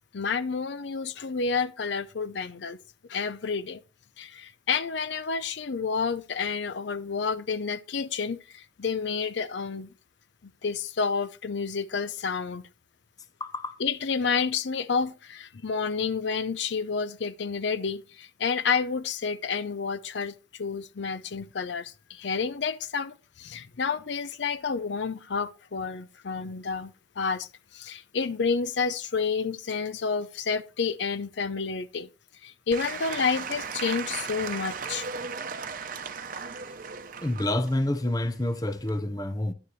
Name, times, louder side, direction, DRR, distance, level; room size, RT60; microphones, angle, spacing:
voice 1, 0.1-2.8 3.1-3.8 4.2-9.9 10.6-12.7 13.8-32.1 32.4-35.1, left 5 dB, 70° left, 0.6 m, -30 dB
voice 2, 13.4-13.8 37.2-39.5, left 1 dB, 20° left, 0.6 m, -28 dB
Applause / Crowd, 32.7-39.0, right 5 dB, 45° right, 0.8 m, -37 dB
11.0 x 9.4 x 3.2 m
head